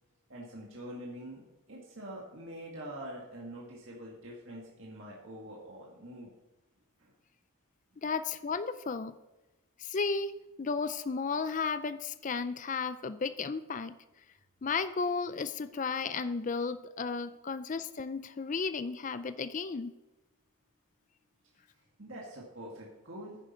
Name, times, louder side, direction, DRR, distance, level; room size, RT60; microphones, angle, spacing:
voice 1, 0.3-6.3 7.0-7.1 7.9-8.0 22.0-23.4, right 1 dB, 60° right, -4 dB, 2.0 m, -45 dB
voice 2, 8.0-9.1 9.8-10.3 10.6-13.9 14.6-19.9, left 4 dB, 35° left, 12 dB, 0.4 m, -34 dB
10.0 x 9.9 x 4.4 m, 1.0 s
head